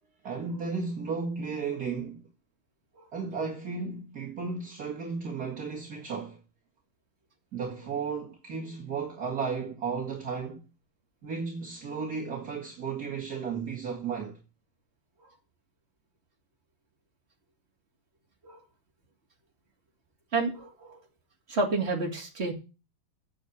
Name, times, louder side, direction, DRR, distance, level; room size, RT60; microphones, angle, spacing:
voice 1, 0.2-2.3 3.1-6.4 7.5-10.6 11.2-14.4, right 5 dB, 45° right, 2.3 m, -34 dB
voice 2, 20.3-21.0 21.5-22.5, right 3 dB, 30° right, 2.8 m, -29 dB
8.8 x 7.3 x 7.8 m
omnidirectional pair, 2.3 m